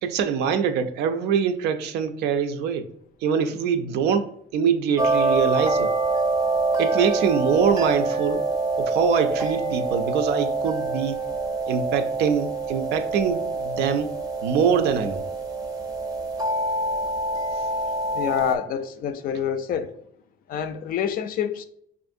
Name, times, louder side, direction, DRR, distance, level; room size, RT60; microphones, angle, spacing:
voice 1, 0.0-2.9 3.2-5.9 6.8-8.4 8.8-11.2 11.7-14.1 14.4-15.2, right 7 dB, 80° right, 0.4 m, -24 dB
sound 1, 5.0-18.6, right 3 dB, 20° right, 0.5 m, -25 dB
voice 2, 18.1-20.0 20.5-21.7, left 8 dB, 60° left, 0.4 m, -27 dB
5.5 x 2.5 x 2.6 m
cardioid pair, 110°, 17 cm